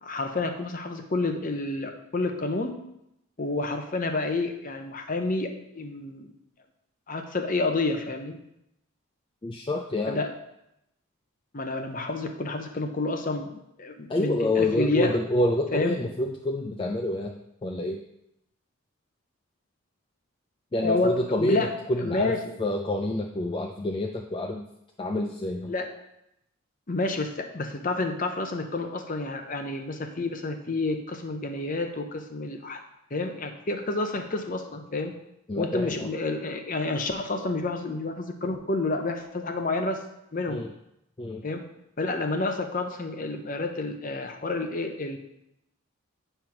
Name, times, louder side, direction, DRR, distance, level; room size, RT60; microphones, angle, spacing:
voice 1, 0.0-2.8 3.4-6.3 7.1-8.4 10.1-10.3 11.5-13.5 13.8-15.2 15.7-16.0 20.8-21.7 22.0-22.5 25.7-25.9 26.9-32.8 33.1-35.1 35.6-40.0 40.3-40.6 41.4-41.6 42.0-45.2, left 3 dB, 40° left, 5 dB, 0.7 m, -29 dB
voice 2, 9.4-10.2 14.1-18.0 20.7-22.3 22.6-24.6 25.0-25.7 35.5-36.1 40.5-40.7 41.2-41.4, left 1 dB, 25° left, 1 dB, 0.4 m, -28 dB
9.2 x 3.4 x 5.8 m, 0.82 s
head